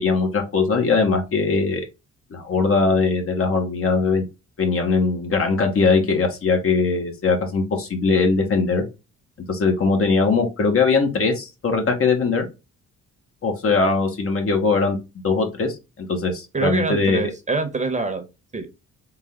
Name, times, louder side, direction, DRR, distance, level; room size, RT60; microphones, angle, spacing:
voice 1, 0.0-1.8 2.3-4.2 4.6-8.8 9.5-12.5 13.4-15.0 15.2-17.2, left 4 dB, 45° left, 3 dB, 1.4 m, -20 dB
voice 2, 16.5-18.2 18.5-18.7, right 3 dB, 25° right, 6 dB, 1.0 m, -24 dB
3.9 x 2.7 x 3.6 m, 0.26 s
cardioid pair, 90°, 30 cm